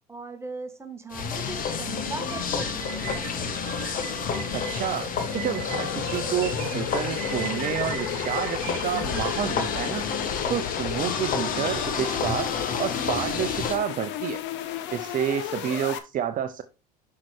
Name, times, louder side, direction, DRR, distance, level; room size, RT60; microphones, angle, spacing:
voice 1, 0.1-3.5 15.6-15.8, right 3 dB, 15° right, 1.7 m, -39 dB
sound 1, 1.1-13.8, left 6 dB, 40° left, 1.6 m, -30 dB
sound 2, 1.2-16.0, left 9 dB, 60° left, 1.2 m, -35 dB
sound 3, 2.0-9.8, right 15 dB, 75° right, 0.9 m, -40 dB
voice 2, 4.5-10.0 10.5-12.5 12.8-14.4 14.9-16.6, right 9 dB, 40° right, 0.8 m, -29 dB
6.0 x 5.6 x 4.8 m
hypercardioid pair, 85°, 21 cm